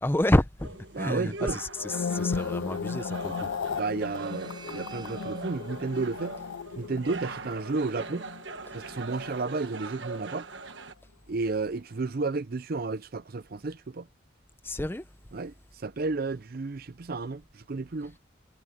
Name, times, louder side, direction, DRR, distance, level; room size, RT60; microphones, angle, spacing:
voice 1, 0.0-3.5 14.6-15.1, left 1 dB, 10° left, 0.7 m, -28 dB
sound 1, 0.6-10.9, right 3 dB, 65° right, 1.3 m, -42 dB
voice 2, 0.9-1.6 3.5-6.3 6.8-8.3 8.7-10.5 11.3-14.1 15.3-18.1, right 3 dB, 50° right, 0.5 m, -32 dB
sound 2, 1.7-10.1 10.3-10.7, left 6 dB, 85° left, 0.4 m, -36 dB
sound 3, 4.0-7.3, right 4 dB, 25° right, 6.5 m, -50 dB
head